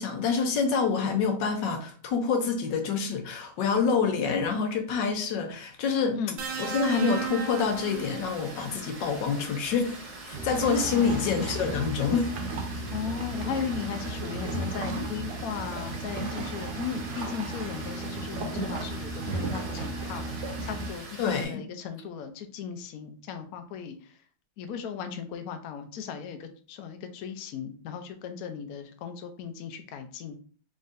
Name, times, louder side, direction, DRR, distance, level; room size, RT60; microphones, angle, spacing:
voice 1, 0.0-6.2 6.6-10.0 10.3-12.3 21.2-21.6, left 5 dB, 90° left, 4 dB, 1.4 m, -27 dB
sound 1, 6.4-8.6 10.0-10.2, right 5 dB, 90° right, 1.4 m, -35 dB
Water, 6.5-21.4, right 2 dB, 45° right, 1.3 m, -44 dB
sound 2, 10.3-20.9, right 2 dB, 70° right, 1.4 m, -34 dB
voice 2, 10.9-11.4 12.9-20.3 20.6-24.2 24.6-30.3, left 7 dB, 65° left, 7 dB, 1.0 m, -37 dB
4.0 x 3.6 x 2.6 m, 0.43 s
omnidirectional pair, 1.9 m